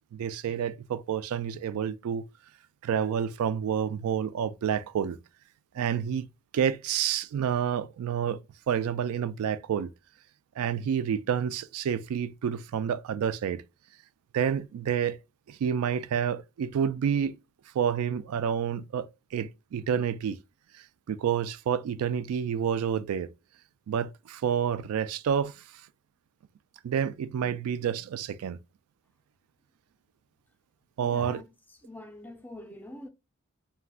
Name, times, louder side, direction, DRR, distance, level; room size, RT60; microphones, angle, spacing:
voice 1, 0.1-2.2 2.8-5.2 5.7-6.3 6.5-8.4 8.7-9.9 10.6-13.6 14.3-15.2 15.5-17.4 17.7-20.4 21.1-23.3 23.9-25.6 26.8-28.6 31.0-31.4, right 8 dB, 85° right, 0.3 m, -29 dB
voice 2, 31.0-33.1, left 1 dB, 10° left, 0.3 m, -44 dB
2.4 x 2.2 x 3.5 m
head